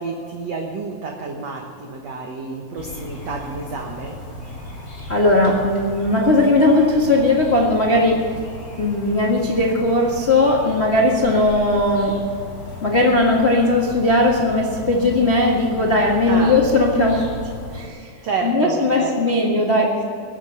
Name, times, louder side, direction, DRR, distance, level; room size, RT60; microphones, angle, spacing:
voice 1, 0.0-4.2 16.3-16.6 18.2-19.4, right 4 dB, 60° right, 1 dB, 1.9 m, -29 dB
sound 1, 2.8-17.9, left 1 dB, 30° left, 4.3 m, -35 dB
voice 2, 5.1-8.3 8.8-12.2 12.8-17.2 17.7-18.1 18.4-20.0, left 2 dB, 80° left, -2 dB, 0.5 m, -18 dB
21.0 x 8.8 x 6.9 m, 2.4 s
omnidirectional pair, 4.4 m